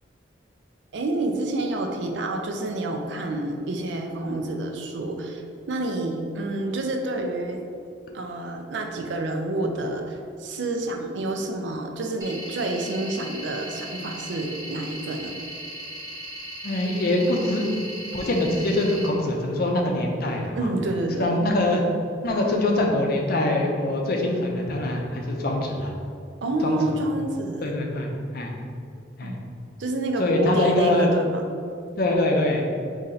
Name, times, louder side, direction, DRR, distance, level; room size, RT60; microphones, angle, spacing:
voice 1, 0.9-5.4 5.7-7.6 8.1-15.4 20.5-21.3 26.4-27.7 29.2-29.4 29.8-31.4, right 2 dB, 70° right, 3 dB, 0.5 m, -28 dB
sound 1, 12.2-19.1, equal, 20° right, 0.9 m, -37 dB
voice 2, 16.6-17.7 18.1-20.7 21.2-21.8 22.2-25.9 26.6-26.8 27.6-28.5 29.2-29.4 30.2-31.1 32.0-32.7, left 1 dB, 55° left, 1 dB, 0.6 m, -23 dB
4.2 x 2.7 x 3.9 m, 2.4 s
head